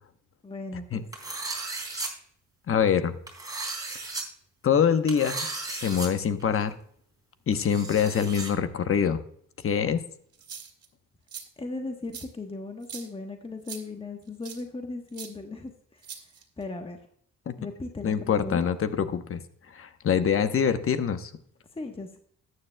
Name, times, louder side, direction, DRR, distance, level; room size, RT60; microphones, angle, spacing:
voice 1, 0.4-1.0 11.6-16.2 16.6-17.0 17.6-18.6 21.7-22.2, left 3 dB, 20° left, 4 dB, 1.2 m, -37 dB
sound 1, 1.1-2.1 3.3-4.2 5.1-6.1 6.4-6.5 7.5-8.5, right 3 dB, 10° right, 3.4 m, -35 dB
voice 2, 2.7-3.1 4.6-6.7 7.5-9.2 9.6-10.0 17.5-17.6 18.0-19.4 19.7-21.3, left 7 dB, 45° left, 10 dB, 1.0 m, -25 dB
sound 2, 10.3-10.9 11.3-11.4 12.1-12.3 12.8-13.1 13.7-13.8 14.4-14.6 15.1-15.3 16.0-16.6, right 7 dB, 50° right, 2.4 m, -41 dB
13.5 x 9.6 x 2.2 m, 0.62 s
cardioid pair, 90°, 30 cm